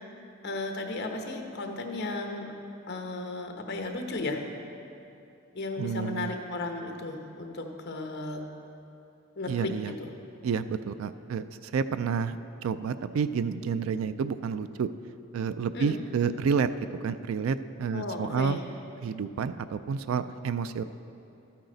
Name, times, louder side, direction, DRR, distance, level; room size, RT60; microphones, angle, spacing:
voice 1, 0.4-2.5 2.9-4.5 5.5-8.5 9.4-10.1 15.7-16.0 17.9-18.6, left 2 dB, 55° left, 3 dB, 1.0 m, -35 dB
voice 2, 5.8-6.3 9.5-9.9 10.4-12.4 12.6-14.9 15.3-16.7 17.0-18.6 19.0-20.8, right 6 dB, 85° right, 12 dB, 0.3 m, -29 dB
13.0 x 8.9 x 4.0 m, 2.7 s
head